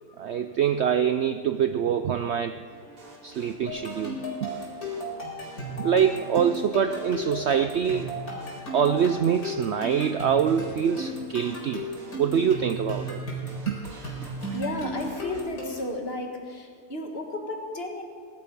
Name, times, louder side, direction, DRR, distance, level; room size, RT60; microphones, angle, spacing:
voice 1, 0.2-2.6 3.2-4.5 5.8-8.1 8.7-11.9 12.2-13.2 13.7-13.8, right 8 dB, 70° right, 9 dB, 0.6 m, -25 dB
sound 1, 2.7-15.4, right 2 dB, 55° right, 2.5 m, -47 dB
sound 2, 3.7-16.0, equal, 65° left, 5.1 m, -35 dB
voice 2, 14.5-18.0, left 1 dB, 40° left, 3 dB, 1.8 m, -33 dB
21.5 x 12.0 x 5.3 m, 2.2 s
omnidirectional pair, 1.7 m